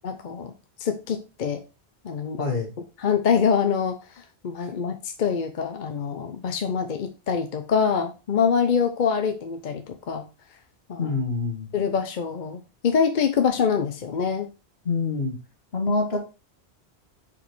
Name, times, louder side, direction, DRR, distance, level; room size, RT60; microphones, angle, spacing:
voice 1, 0.0-0.5 0.8-1.6 2.0-2.4 3.0-10.3 10.9-11.1 11.7-14.5, left 6 dB, 50° left, 6 dB, 0.8 m, -25 dB
voice 2, 2.4-2.7 11.0-11.7 14.9-15.4 15.7-16.2, left 3 dB, 65° left, 2 dB, 1.9 m, -25 dB
5.1 x 4.9 x 4.5 m, 0.31 s
omnidirectional pair, 1.1 m